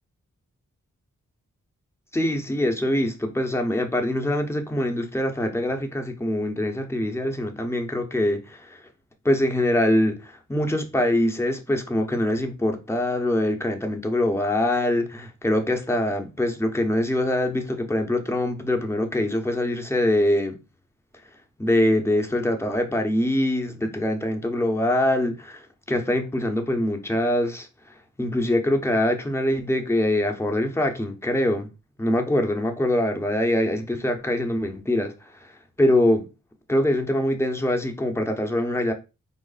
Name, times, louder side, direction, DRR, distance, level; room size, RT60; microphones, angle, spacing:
voice 1, 2.1-8.8 9.2-20.6 21.6-27.7 28.2-31.7 32.0-35.1 35.4-35.5 35.8-36.3 36.7-38.9, left 1 dB, 10° left, 0.9 m, -24 dB
4.5 x 2.0 x 4.0 m
cardioid pair, 45°, 32 cm